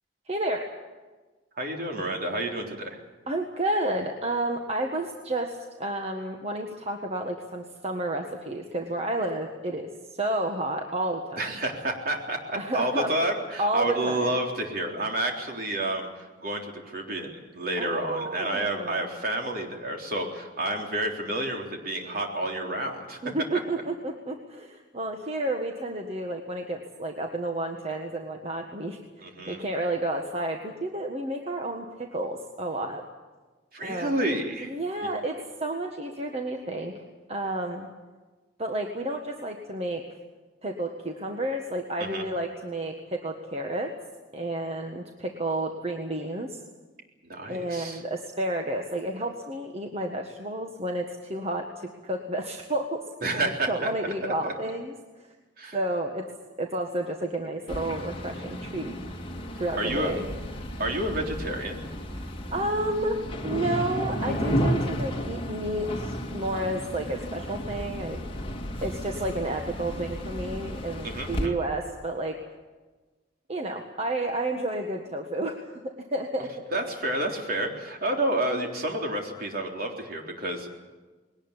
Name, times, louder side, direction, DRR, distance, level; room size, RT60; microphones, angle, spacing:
voice 1, 0.3-0.7 3.3-11.4 12.5-13.1 13.6-14.3 17.8-19.0 23.2-29.0 29.5-33.0 33.8-34.1 34.6-37.9 38.6-40.0 40.6-43.9 44.3-46.6 47.5-53.0 53.3-54.9 55.7-56.3 56.6-58.9 59.6-60.2 62.5-68.2 68.8-72.4 73.5-76.7, right 1 dB, 35° right, 3 dB, 1.6 m, -31 dB
voice 2, 1.6-3.0 11.4-23.2 29.2-29.7 33.7-34.7 42.0-42.3 47.2-48.0 53.2-53.9 54.4-54.5 55.6-55.8 59.8-60.3 60.8-61.8 71.0-71.6 76.7-80.7, right 1 dB, 55° right, 1 dB, 3.8 m, -30 dB
sound 1, 57.7-71.5, equal, 30° left, 2.2 m, -33 dB
21.0 x 18.5 x 9.9 m, 1.3 s
head